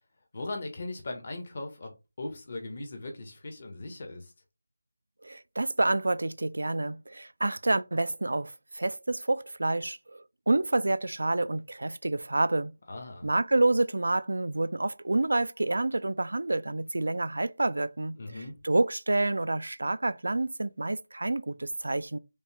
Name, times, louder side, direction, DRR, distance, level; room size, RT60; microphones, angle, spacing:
voice 1, 0.3-1.9 2.2-4.3 12.9-13.3 18.1-18.5, left 2 dB, 45° left, 1.4 m, -38 dB
voice 2, 5.2-12.7 13.2-18.2 18.6-22.2, right 2 dB, 75° right, 0.4 m, -28 dB
5.2 x 2.5 x 3.5 m
figure-of-eight pair, 165°, 0 cm